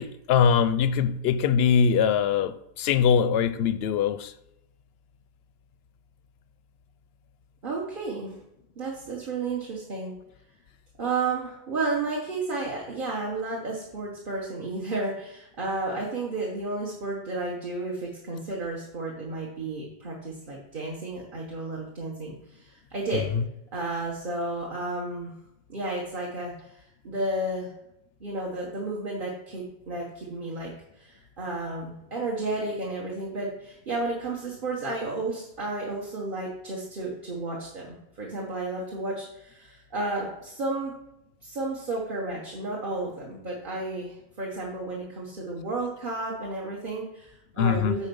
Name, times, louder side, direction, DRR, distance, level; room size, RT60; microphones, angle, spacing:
voice 1, 0.0-4.3 23.3-23.4 47.6-48.0, left 7 dB, 75° left, 0.8 m, -22 dB
voice 2, 7.6-8.4 8.8-10.1 11.0-23.3 23.7-25.3 25.7-27.7 28.2-40.9 41.4-48.1, right 2 dB, 55° right, 1.4 m, -32 dB
9.1 x 4.2 x 5.3 m
omnidirectional pair, 1.0 m